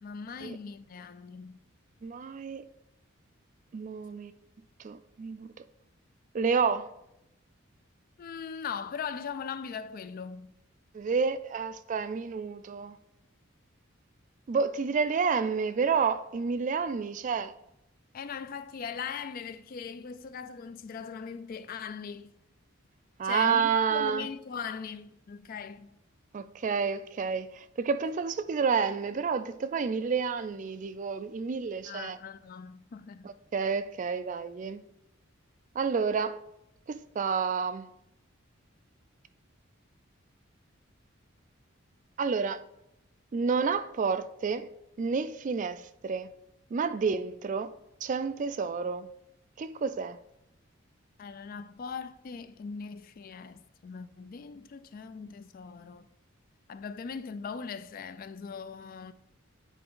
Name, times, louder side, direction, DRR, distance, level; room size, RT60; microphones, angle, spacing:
voice 1, 0.0-1.6 8.2-10.5 18.1-22.3 23.2-25.9 31.9-33.3 51.2-56.1 56.7-59.1, left 6 dB, 45° left, 0.3 m, -40 dB
voice 2, 2.0-2.6 3.7-4.3 4.8-5.5 6.3-6.9 10.9-13.0 14.5-17.5 23.2-24.3 26.3-32.2 33.2-34.8 35.8-36.4 36.9-37.9 42.2-42.6 43.3-44.7 45.0-46.3 46.7-47.7 48.0-49.1 49.6-50.2, right 5 dB, 40° right, 0.3 m, -29 dB
9.1 x 4.3 x 3.7 m
head